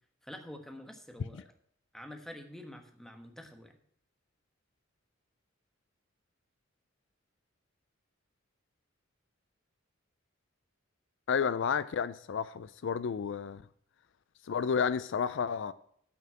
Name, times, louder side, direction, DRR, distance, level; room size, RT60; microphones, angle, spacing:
voice 1, 0.2-1.5 1.9-3.7, left 1 dB, ahead, 1.3 m, -47 dB
voice 2, 11.3-13.6 14.5-15.7, left 6 dB, 65° left, 0.4 m, -31 dB
9.3 x 5.7 x 7.4 m
head